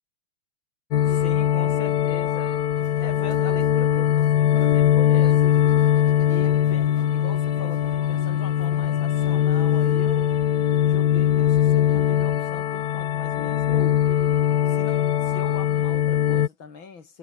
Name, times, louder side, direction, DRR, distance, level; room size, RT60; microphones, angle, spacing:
sound 1, 0.9-16.5, left 10 dB, 60° left, 1.4 m, -21 dB
voice 1, 1.0-2.6 3.0-5.7 6.3-10.3 10.8-14.0 14.7-17.2, left 5 dB, 75° left, 3.7 m, -40 dB
sound 2, 2.7-10.4, right 4 dB, 90° right, 5.2 m, -47 dB
omnidirectional pair, 2.2 m